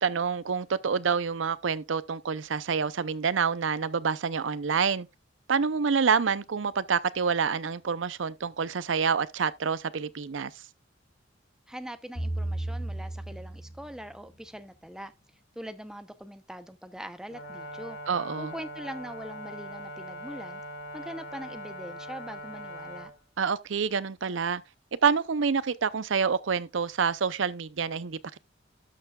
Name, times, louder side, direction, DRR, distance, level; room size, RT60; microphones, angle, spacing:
voice 1, 0.0-5.1 5.5-10.6 18.1-18.5 23.4-24.6 25.0-28.4, right 6 dB, 80° right, 0.6 m, -27 dB
voice 2, 11.7-15.1 15.6-18.0 18.4-20.6 20.9-23.1, equal, 5° right, 0.7 m, -42 dB
sound 1, 12.2-14.6, right 1 dB, 55° left, 2.6 m, -34 dB
Brass instrument, 17.3-23.1, equal, 90° left, 4.8 m, -41 dB
12.5 x 6.8 x 2.4 m
head